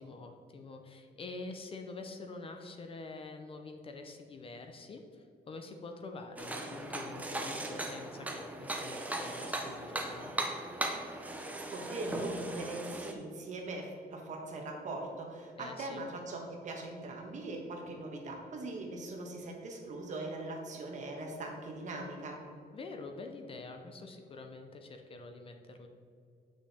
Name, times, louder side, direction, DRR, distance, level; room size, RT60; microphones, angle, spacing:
voice 1, 0.0-10.3 15.5-16.0 22.7-25.9, left 3 dB, 35° left, 5 dB, 0.6 m, -46 dB
sound 1, 6.4-13.1, right 1 dB, 10° right, 0.6 m, -38 dB
voice 2, 11.7-22.4, right 2 dB, 45° right, 1 dB, 1.3 m, -41 dB
8.1 x 6.2 x 4.2 m, 2.4 s
cardioid pair, 180°, 17 cm